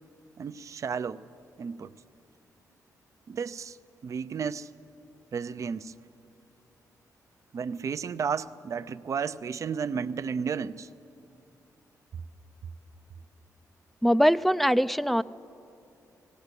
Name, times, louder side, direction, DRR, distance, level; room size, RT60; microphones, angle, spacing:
voice 1, 0.4-1.2 1.6-1.9 3.3-3.8 4.0-4.7 5.3-5.9 7.5-10.9, right 6 dB, 55° right, 13 dB, 0.6 m, -32 dB
voice 2, 14.0-15.2, equal, ahead, 15 dB, 0.4 m, -22 dB
18.5 x 17.5 x 8.3 m, 2.7 s
cardioid pair, 95°, 7 cm